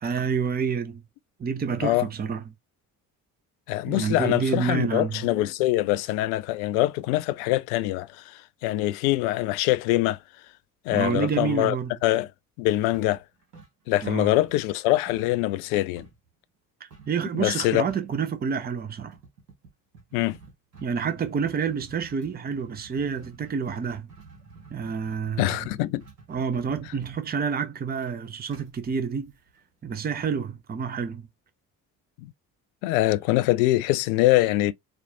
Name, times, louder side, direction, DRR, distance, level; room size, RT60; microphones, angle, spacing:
voice 1, 0.0-1.0 1.4-2.5 3.8-5.3 10.9-11.9 14.0-14.3 16.8-19.2 20.8-24.1 24.7-25.7 26.3-29.3 29.8-31.3, right 6 dB, 20° right, 0.7 m, -28 dB
voice 2, 3.7-10.2 10.9-11.7 12.0-12.3 12.6-13.2 13.9-16.1 17.3-17.8 20.1-20.4 25.4-26.0 32.8-34.7, left 16 dB, 60° left, 0.5 m, -24 dB
sound 1, 12.9-14.1 14.4-16.3 16.9-17.2 17.5-17.6 17.8-18.2 19.0-29.8, right 4 dB, 85° right, 1.0 m, -50 dB
4.3 x 2.3 x 2.4 m
figure-of-eight pair, 45°, 47 cm